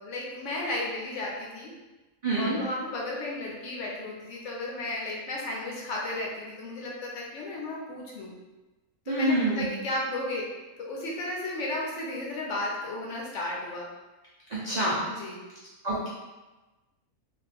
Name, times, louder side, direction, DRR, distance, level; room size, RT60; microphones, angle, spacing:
voice 1, 0.0-1.7 2.4-8.3 9.1-10.5 10.8-13.9 15.0-15.4, left 2 dB, 65° left, -3 dB, 0.9 m, -34 dB
voice 2, 2.2-2.6 9.1-9.7 14.5-14.9 15.8-16.1, right 1 dB, 75° right, -8 dB, 0.3 m, -26 dB
2.5 x 2.4 x 3.3 m, 1.1 s
omnidirectional pair, 1.5 m